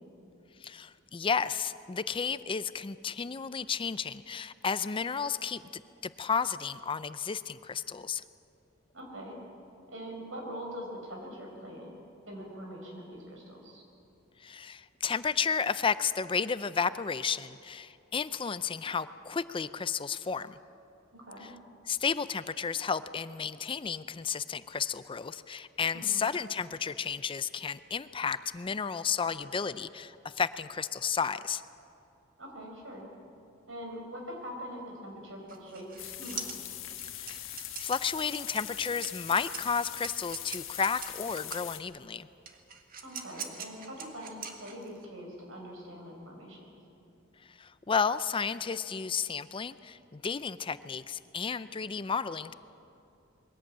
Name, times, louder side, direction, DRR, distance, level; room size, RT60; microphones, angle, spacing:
voice 1, 0.6-8.2 14.4-20.6 21.9-31.6 37.2-42.3 47.6-52.5, left 6 dB, 25° left, 14 dB, 0.4 m, -32 dB
voice 2, 8.9-9.4 9.9-11.9 12.3-13.8 21.1-21.5 25.9-26.2 32.4-33.1 33.7-36.4 43.0-46.7, equal, 75° right, 1 dB, 5.5 m, -43 dB
sound 1, 35.5-41.7 42.5-45.1, right 7 dB, 45° right, 1.8 m, -43 dB
sound 2, 36.0-41.8, left 12 dB, 80° left, 1.5 m, -42 dB
22.5 x 17.0 x 8.6 m, 2.6 s
head